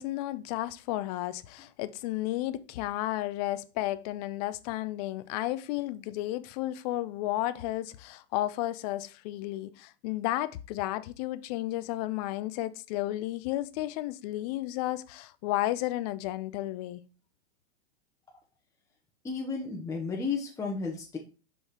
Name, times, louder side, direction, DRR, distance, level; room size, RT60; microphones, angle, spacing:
voice 1, 0.0-17.0, left 15 dB, 40° left, 0.6 m, -33 dB
voice 2, 19.2-21.2, left 4 dB, 10° left, 1.0 m, -33 dB
5.5 x 5.5 x 4.3 m
hypercardioid pair, 120°, 33 cm